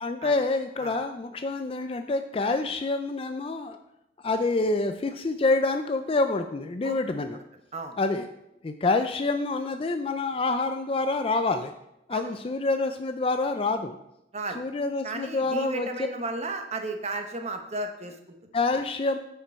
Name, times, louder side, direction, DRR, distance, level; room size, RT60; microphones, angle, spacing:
voice 1, 0.0-3.8 4.2-7.4 8.0-8.3 8.6-11.7 12.1-14.0 14.6-16.1 18.5-19.2, left 3 dB, 30° left, 7 dB, 0.4 m, -27 dB
voice 2, 15.0-18.4, right 2 dB, 40° right, 5 dB, 0.9 m, -34 dB
8.9 x 5.1 x 4.3 m, 0.83 s
head